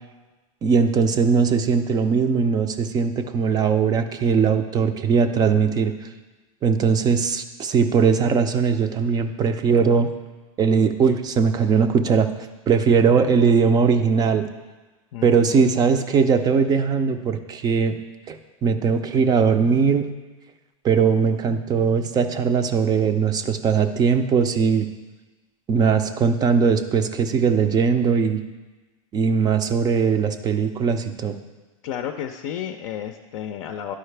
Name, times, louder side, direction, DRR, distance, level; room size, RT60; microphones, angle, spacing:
voice 1, 0.6-5.9 6.6-10.1 10.6-12.3 12.7-14.4 15.2-17.9 18.3-18.4 18.6-20.1 20.8-24.9 25.7-28.4 29.1-31.4, right 5 dB, 20° right, 9 dB, 0.4 m, -20 dB
voice 2, 15.1-15.7 31.8-33.9, left 9 dB, 55° left, 5 dB, 0.5 m, -32 dB
11.5 x 4.7 x 3.3 m, 1.2 s
hypercardioid pair, 125°, 19 cm